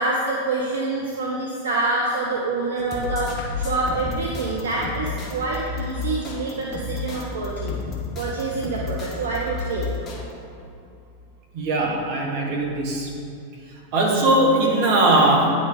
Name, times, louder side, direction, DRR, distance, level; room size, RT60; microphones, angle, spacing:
voice 1, 0.0-7.8 8.2-9.9, right 2 dB, 65° right, -3 dB, 0.7 m, -26 dB
sound 1, 2.8-10.2, left 3 dB, 25° left, 1.0 m, -31 dB
voice 2, 11.5-13.1 13.9-15.5, right 2 dB, 45° right, -1 dB, 1.3 m, -19 dB
9.3 x 4.1 x 3.8 m, 2.5 s
figure-of-eight pair, 90°, 0 cm